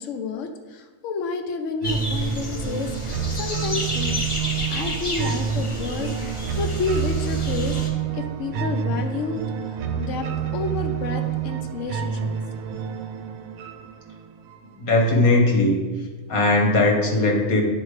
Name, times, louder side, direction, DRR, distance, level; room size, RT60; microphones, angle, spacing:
voice 1, 0.0-4.2 4.7-6.1 6.6-7.8 8.1-9.4 10.0-12.3, left 4 dB, 70° left, 6 dB, 1.0 m, -30 dB
sound 1, 1.8-7.9, left 1 dB, 25° left, 0.7 m, -31 dB
sound 2, 1.8-14.8, right 7 dB, 80° right, 1.0 m, -28 dB
voice 2, 14.8-15.8 16.3-17.6, left 2 dB, 85° left, 1 dB, 1.7 m, -18 dB
10.0 x 4.5 x 3.2 m, 1.3 s
omnidirectional pair, 1.4 m